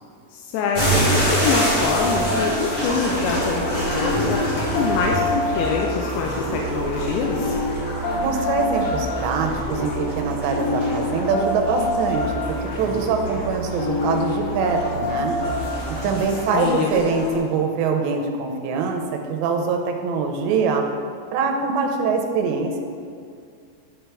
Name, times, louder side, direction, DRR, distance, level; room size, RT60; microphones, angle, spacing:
voice 1, 0.3-7.6 16.2-17.3, left 5 dB, 90° left, 0 dB, 2.8 m, -25 dB
sound 1, 0.7-17.3, right 1 dB, 35° left, 2.0 m, -28 dB
sound 2, 0.9-16.2, left 1 dB, 65° left, 3.3 m, -27 dB
voice 2, 8.2-15.4 16.0-20.9 21.3-22.8, right 5 dB, 85° right, 3 dB, 2.9 m, -23 dB
10.5 x 6.1 x 3.4 m, 2.2 s
omnidirectional pair, 5.0 m